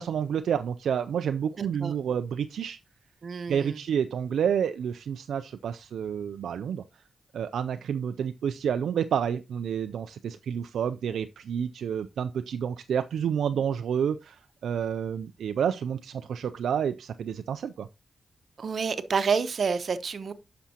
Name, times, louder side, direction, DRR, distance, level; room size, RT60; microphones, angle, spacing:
voice 1, 0.0-2.8 3.5-6.8 7.3-17.9, right 8 dB, 90° right, 0.3 m, -29 dB
voice 2, 1.6-1.9 3.2-3.8 18.6-20.3, right 5 dB, 65° right, 0.8 m, -29 dB
10.0 x 6.0 x 2.8 m
cardioid pair, 60°, 0 cm